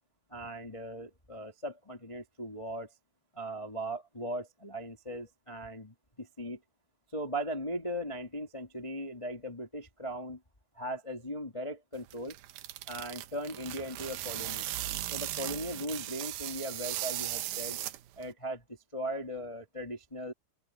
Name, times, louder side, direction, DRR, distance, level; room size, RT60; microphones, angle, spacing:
voice 1, 0.3-2.9 3.3-5.9 6.4-6.6 7.1-10.4 10.7-12.4 12.9-14.6 15.1-17.8 18.2-18.6 18.9-20.3, equal, 50° left, 0.3 m, -38 dB
sound 1, 11.9-18.3, right 15 dB, 85° right, 2.0 m, -38 dB
open air
omnidirectional pair, 5.1 m